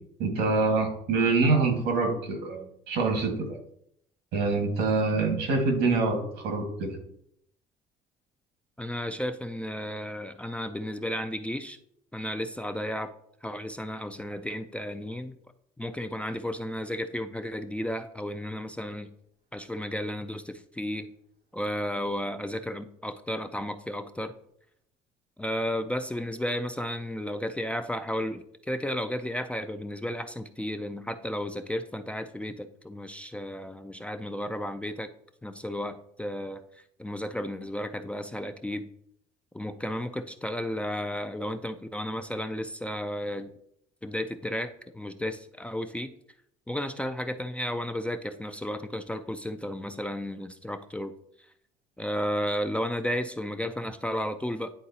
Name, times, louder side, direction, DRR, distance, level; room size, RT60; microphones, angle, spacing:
voice 1, 0.2-3.6 4.3-7.0, right 3 dB, 85° right, 3 dB, 1.6 m, -25 dB
voice 2, 8.8-11.8 12.1-13.1 13.4-15.3 15.8-19.1 19.5-21.1 21.5-24.3 25.4-35.1 35.4-36.6 37.0-38.9 39.5-43.5 44.0-46.1 46.7-51.1 52.0-54.7, equal, 5° left, 8 dB, 0.3 m, -33 dB
9.9 x 3.8 x 2.8 m, 0.70 s
cardioid pair, 110°, 17 cm